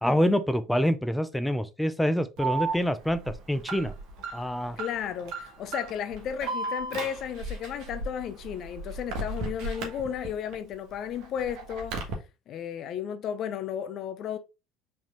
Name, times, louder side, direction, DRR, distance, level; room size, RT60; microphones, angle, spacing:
voice 1, 0.0-3.9 4.3-4.8, equal, 5° left, 0.6 m, -26 dB
Alarm, 2.4-10.5 10.9-12.1, right 3 dB, 60° right, 1.3 m, -35 dB
voice 2, 4.8-12.0 12.5-14.4, left 9 dB, 50° left, 0.5 m, -34 dB
4.8 x 3.6 x 3.0 m
hypercardioid pair, 65°, 0 cm